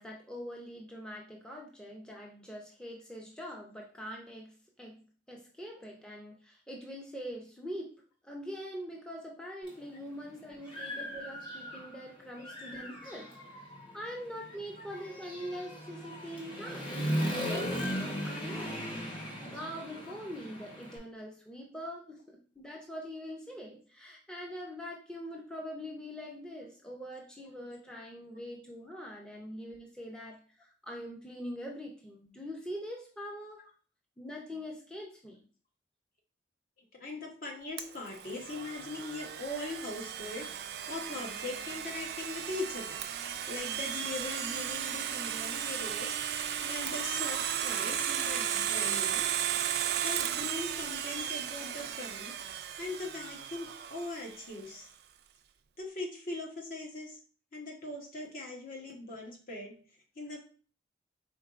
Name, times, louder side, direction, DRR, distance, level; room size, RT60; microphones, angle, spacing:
voice 1, 0.0-7.9 8.2-13.3 13.5-13.7 13.9-16.9 17.3-18.8 19.2-33.6 34.2-35.4 46.5-46.7 47.3-47.4 49.6-49.8, equal, 5° left, -1 dB, 0.5 m, -43 dB
Human voice / Motorcycle, 9.7-9.8 10.3-12.0 12.4-21.0, equal, 25° left, 0.9 m, -37 dB
voice 2, 12.2-12.5 14.5-14.9 37.0-40.5 40.9-43.0 43.5-46.1 46.6-49.3 50.0-52.4 52.8-54.9 55.8-57.2 57.5-59.7 60.2-60.4, left 2 dB, 50° left, 1 dB, 1.0 m, -40 dB
Domestic sounds home sounds, 37.8-54.5, right 9 dB, 60° right, 0.3 m, -35 dB
4.5 x 3.7 x 2.4 m, 0.40 s
head